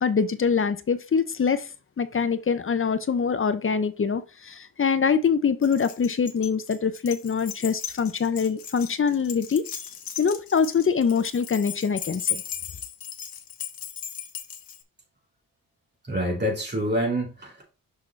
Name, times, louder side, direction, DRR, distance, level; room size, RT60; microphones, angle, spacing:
voice 1, 0.0-1.7 2.0-9.6 10.2-12.4, left 6 dB, 35° left, 0.5 m, -24 dB
Keys jangling, 5.6-14.8, left 9 dB, 75° left, 1.1 m, -36 dB
voice 2, 16.1-17.6, equal, 30° right, 3.3 m, -26 dB
6.2 x 6.1 x 3.2 m
wide cardioid pair, 115°, 35 cm